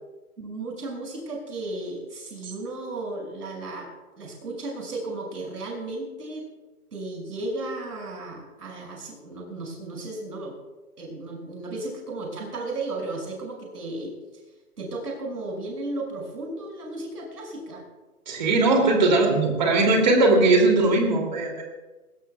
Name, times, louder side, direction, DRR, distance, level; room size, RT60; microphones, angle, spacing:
voice 1, 0.4-3.9 4.2-6.5 6.9-10.5 11.0-14.1 14.8-17.8 18.8-18.9, right 2 dB, 85° right, -1 dB, 6.3 m, -34 dB
voice 2, 18.3-21.6, right 2 dB, 30° right, 1 dB, 2.7 m, -19 dB
24.5 x 17.5 x 2.3 m, 1.2 s
hypercardioid pair, 180°, 46 cm